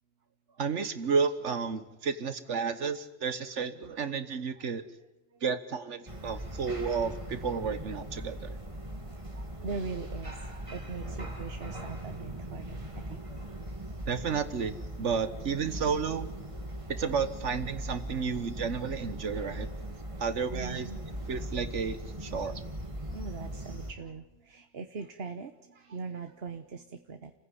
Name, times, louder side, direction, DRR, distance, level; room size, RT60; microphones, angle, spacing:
voice 1, 0.6-4.9 5.4-8.6 14.1-16.3 16.9-19.7 20.2-20.9 21.3-22.6, right 5 dB, 80° right, 12 dB, 1.6 m, -32 dB
sound 1, 6.1-23.9, right 1 dB, 25° right, 2.8 m, -40 dB
voice 2, 9.1-13.2 13.6-13.8 15.9-16.0 20.5-21.0 23.1-27.3, right 4 dB, 60° right, 8 dB, 1.5 m, -41 dB
29.5 x 15.5 x 9.8 m, 1.0 s
omnidirectional pair, 1.2 m